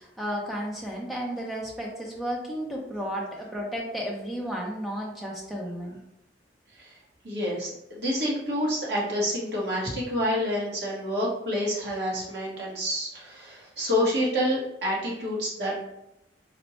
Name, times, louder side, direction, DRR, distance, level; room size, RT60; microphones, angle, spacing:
voice 1, 0.0-6.0, equal, ahead, -2 dB, 0.6 m, -33 dB
voice 2, 7.2-15.7, equal, 60° right, -5 dB, 1.1 m, -28 dB
4.1 x 2.2 x 2.9 m, 0.87 s
head